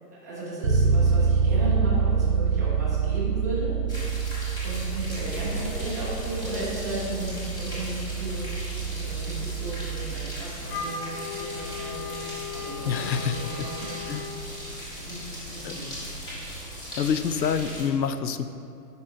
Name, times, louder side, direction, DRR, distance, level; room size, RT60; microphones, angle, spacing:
voice 1, 0.1-3.8 4.6-14.0 14.9-16.0, right 1 dB, 10° right, -8 dB, 0.4 m, -35 dB
Bass guitar, 0.6-10.5, right 5 dB, 85° right, 1.1 m, -26 dB
sound 1, 3.9-17.8, equal, 10° left, 0.8 m, -38 dB
Wind instrument woodwind instrument, 10.7-14.3, left 5 dB, 35° left, 0.8 m, -37 dB
voice 2, 12.9-13.7 14.1-14.3 15.6-15.8 16.9-18.5, left 7 dB, 90° left, 10 dB, 0.6 m, -27 dB
9.4 x 5.2 x 2.7 m, 2.7 s
figure-of-eight pair, 130°, 50 cm